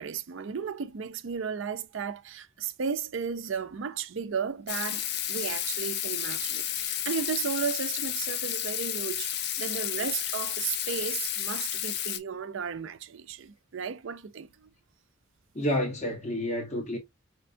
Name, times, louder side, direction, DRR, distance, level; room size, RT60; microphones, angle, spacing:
voice 1, 0.0-14.7, right 6 dB, 70° right, 0.4 m, -34 dB
Water tap faucet / Sink (filling or washing), 4.7-12.2, left 11 dB, 50° left, 0.4 m, -32 dB
voice 2, 15.5-17.0, equal, 35° left, 1.0 m, -29 dB
5.1 x 2.2 x 2.6 m
head